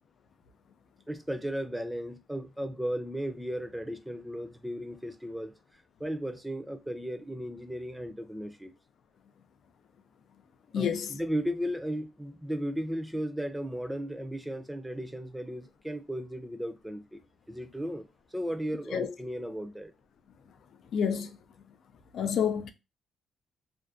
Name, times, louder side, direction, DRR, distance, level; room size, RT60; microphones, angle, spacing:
voice 1, 1.1-5.5 6.0-8.7 10.8-17.2 17.5-18.1 18.3-19.9, equal, 5° right, 0.5 m, -35 dB
voice 2, 10.7-11.1 18.9-19.1 20.9-21.4 22.1-22.7, left 7 dB, 75° left, 0.4 m, -28 dB
2.5 x 2.2 x 2.4 m
supercardioid pair, 65°, 0 cm